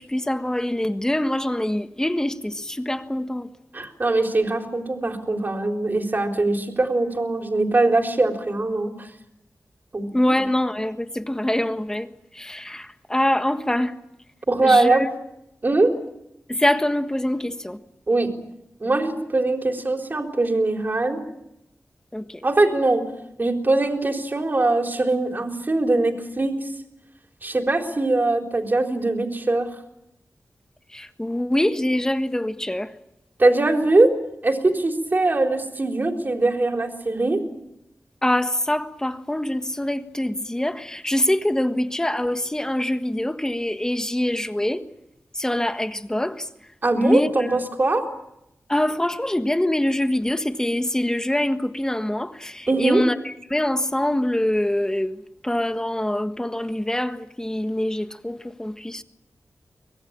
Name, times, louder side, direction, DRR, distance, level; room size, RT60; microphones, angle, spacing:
voice 1, 0.0-2.3 2.7-3.5 10.1-12.1 12.4-12.8 13.1-13.9 14.6-14.9 16.6-17.8 22.1-22.2 30.9-32.9 38.2-44.8 45.4-46.3 46.9-47.3 48.7-53.1 53.5-55.1 55.4-59.0, left 1 dB, 10° left, 1.5 m, -24 dB
voice 2, 3.7-9.1 9.9-10.4 14.5-15.1 15.6-15.9 18.1-18.3 18.8-21.2 22.4-23.0 23.4-26.7 27.4-29.7 33.4-34.2 34.4-37.4 46.8-48.0 52.7-53.0, right 2 dB, 40° right, 4.0 m, -21 dB
24.5 x 21.0 x 8.8 m
wide cardioid pair, 115°, 5 cm